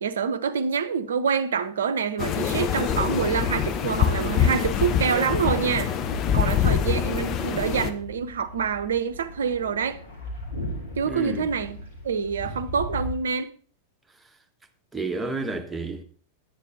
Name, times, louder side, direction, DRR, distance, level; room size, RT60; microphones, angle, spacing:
voice 1, 0.0-5.9 6.3-10.0 11.0-11.8 12.0-13.5, right 6 dB, 65° right, 0.7 m, -26 dB
sound 1, 2.2-7.9, left 8 dB, 35° left, 0.9 m, -25 dB
sound 2, 2.8-13.2, left 1 dB, 65° left, 3.0 m, -38 dB
voice 2, 11.0-11.5 14.9-16.0, right 3 dB, 10° right, 1.3 m, -30 dB
10.5 x 9.1 x 4.0 m
figure-of-eight pair, 90°, 0 cm